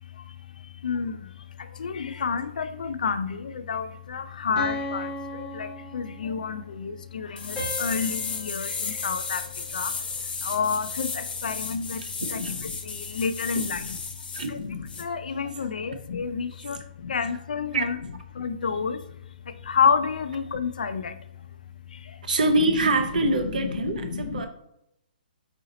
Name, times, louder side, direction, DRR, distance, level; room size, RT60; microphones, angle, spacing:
voice 1, 0.8-1.3 1.7-9.4 9.7-9.9 10.4-12.0 12.3-14.0 14.5-18.0 18.3-19.0 19.6-21.2 21.9-22.0 23.8-24.5, left 6 dB, 60° left, 11 dB, 0.4 m, -29 dB
sound 1, 4.6-6.5 7.6-9.9, left 1 dB, 5° left, 0.9 m, -37 dB
sound 2, 7.4-14.5 14.9-15.0, left 4 dB, 75° left, 0.9 m, -34 dB
voice 2, 12.0-12.5 13.5-13.6 14.3-14.5 16.7-16.8 17.3-17.4 17.7-17.9 22.3-24.5, right 2 dB, 55° right, 7 dB, 0.7 m, -25 dB
4.1 x 2.8 x 3.8 m, 0.80 s
hypercardioid pair, 180°, 5 cm